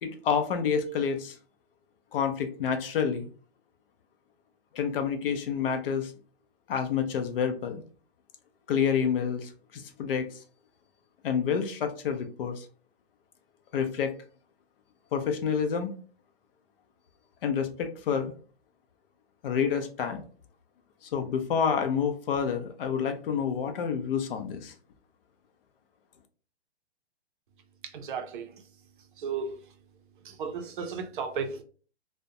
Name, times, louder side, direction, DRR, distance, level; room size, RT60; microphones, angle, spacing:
voice 1, 0.0-1.4 2.1-3.3 4.7-6.1 6.7-7.8 8.7-10.3 11.2-12.6 13.7-14.1 15.1-16.0 17.4-18.3 19.4-20.2 21.0-24.7, left 7 dB, 55° left, 0.5 m, -28 dB
voice 2, 27.9-28.5 29.2-29.6 30.2-31.6, right 5 dB, 50° right, 0.5 m, -34 dB
2.4 x 2.1 x 2.6 m
hypercardioid pair, 140°, 33 cm